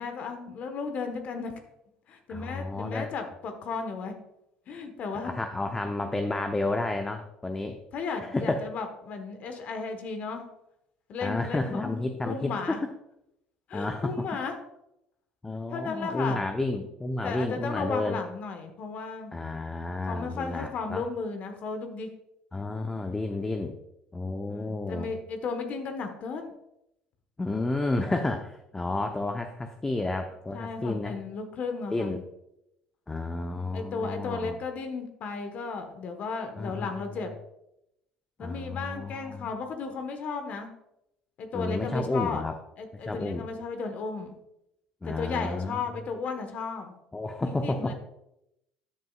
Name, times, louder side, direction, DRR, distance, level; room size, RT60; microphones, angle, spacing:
voice 1, 0.0-1.5 2.1-4.1 4.7-5.3 7.9-10.5 11.1-12.9 13.7-14.5 15.7-16.4 17.2-19.3 20.1-22.1 24.5-26.5 30.5-32.2 33.7-37.3 38.4-40.7 41.4-42.4 42.8-44.4 45.0-46.9 47.4-47.9, left 4 dB, 55° left, 6 dB, 1.3 m, -34 dB
voice 2, 2.3-3.1 5.2-7.8 8.3-8.6 11.2-12.5 13.7-14.3 15.4-18.2 19.3-21.0 22.5-23.8 24.1-25.1 27.4-31.2 31.9-32.2 33.1-34.5 36.6-37.2 38.4-39.5 41.5-42.5 43.0-43.5 45.0-45.8 47.1-47.9, left 2 dB, 15° left, 6 dB, 0.8 m, -31 dB
13.0 x 8.0 x 2.4 m, 0.84 s
hypercardioid pair, 65°, 3 cm